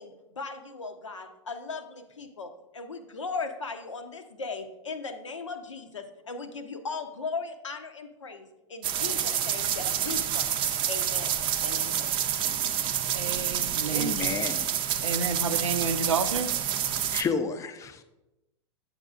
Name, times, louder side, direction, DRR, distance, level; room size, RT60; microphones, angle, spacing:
voice 1, 0.0-10.5 10.9-12.3, left 4 dB, 90° left, 7 dB, 0.7 m, -38 dB
sound 1, 8.8-17.2, right 9 dB, 35° right, 0.5 m, -28 dB
voice 2, 13.1-14.3 15.0-16.5, right 5 dB, 85° right, 10 dB, 0.5 m, -30 dB
voice 3, 13.9-14.7 17.1-18.0, left 5 dB, 20° left, 10 dB, 0.5 m, -31 dB
8.9 x 6.5 x 2.4 m, 1.0 s
hypercardioid pair, 100°, 15 cm